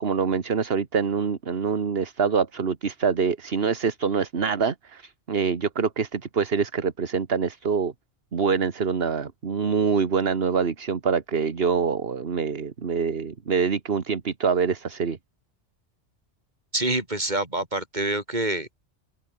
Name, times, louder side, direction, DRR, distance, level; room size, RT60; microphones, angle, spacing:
voice 1, 0.0-7.9 8.3-15.2, right 5 dB, 55° right, 1.7 m, -25 dB
voice 2, 16.7-18.8, right 1 dB, 40° right, 4.7 m, -26 dB
open air
omnidirectional pair, 1.2 m